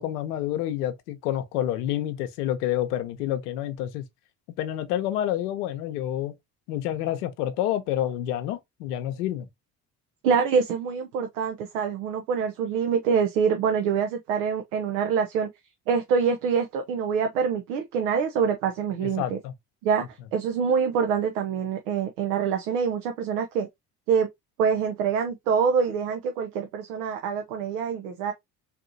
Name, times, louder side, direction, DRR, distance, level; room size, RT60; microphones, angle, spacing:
voice 1, 0.0-4.0 4.6-6.3 6.7-9.5 19.2-19.5, left 12 dB, 80° left, 0.8 m, -28 dB
voice 2, 10.2-15.5 15.9-19.4 19.8-23.7 24.1-24.3 24.6-28.3, right 6 dB, 85° right, 0.8 m, -25 dB
4.3 x 2.8 x 2.6 m
hypercardioid pair, 65°, 45 cm